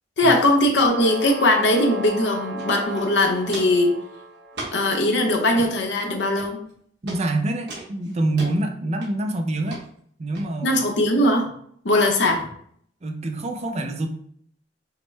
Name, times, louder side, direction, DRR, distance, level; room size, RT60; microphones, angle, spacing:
voice 1, 0.2-3.9 4.7-6.6 10.6-11.5 11.8-12.5, left 1 dB, 70° left, 2 dB, 0.8 m, -20 dB
sound 1, 0.9-4.9, right 2 dB, 80° right, 0.9 m, -35 dB
Walk footsteps, 2.6-2.7 2.9-3.9 4.5-4.9 5.4-5.7 6.4-6.7 7.1-7.2 7.7-8.5 9.0-9.3 9.7-9.8 10.4-10.5, right 2 dB, 65° right, 1.3 m, -36 dB
voice 2, 7.0-9.8 10.2-10.8 13.0-14.1, right 2 dB, 35° right, 4 dB, 0.5 m, -26 dB
5.7 x 2.2 x 3.3 m, 0.63 s
head